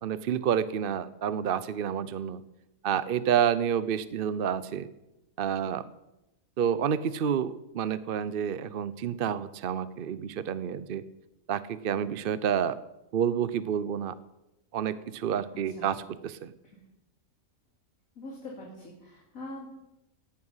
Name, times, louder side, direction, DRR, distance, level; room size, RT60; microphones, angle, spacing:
voice 1, 0.0-2.4 2.8-4.9 5.4-5.9 6.6-11.0 11.5-12.8 13.1-14.2 14.7-16.5, right 8 dB, 55° right, 15 dB, 0.6 m, -29 dB
voice 2, 18.1-19.8, left 1 dB, 75° left, -2 dB, 3.3 m, -43 dB
17.5 x 11.0 x 5.6 m, 0.92 s
omnidirectional pair, 1.4 m